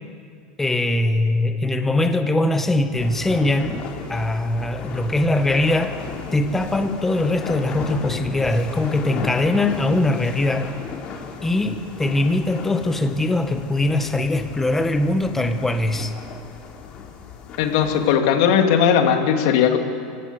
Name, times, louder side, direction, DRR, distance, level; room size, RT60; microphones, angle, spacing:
voice 1, 0.6-6.0 6.3-10.7 11.4-16.1, left 2 dB, 10° left, 8 dB, 1.5 m, -21 dB
sound 1, 2.9-18.2, left 6 dB, 45° left, 3.2 m, -36 dB
voice 2, 17.6-19.8, left 8 dB, 70° left, 5 dB, 2.5 m, -18 dB
26.0 x 16.5 x 8.1 m, 2.2 s
supercardioid pair, 115°, 3 cm